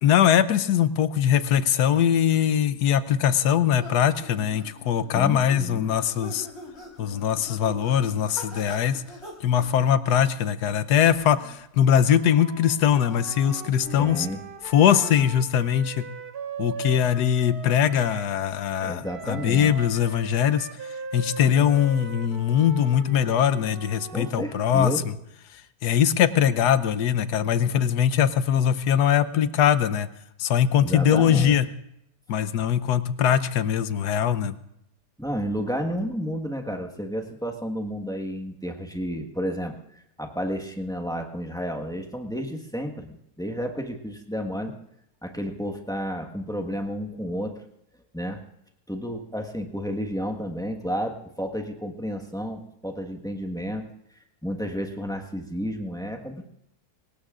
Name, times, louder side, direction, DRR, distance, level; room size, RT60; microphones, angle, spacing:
voice 1, 0.0-6.5 7.0-9.0 9.4-14.3 14.6-16.0 16.6-20.7 21.1-24.9 25.8-30.1 30.4-31.7 32.3-34.5, left 9 dB, 75° left, 13 dB, 1.3 m, -21 dB
sound 1, 3.4-15.4, left 1 dB, 40° left, 3.8 m, -44 dB
voice 2, 5.1-5.8 14.0-14.4 18.8-19.7 24.1-25.1 30.8-31.6 35.2-44.7 45.2-47.6 48.1-48.4 48.9-53.8 54.4-56.4, equal, 5° left, 2 dB, 1.2 m, -31 dB
Wind instrument woodwind instrument, 11.9-18.3 19.0-25.1, right 4 dB, 70° right, 1.8 m, -40 dB
23.5 x 19.5 x 2.5 m, 0.78 s
omnidirectional pair, 1.7 m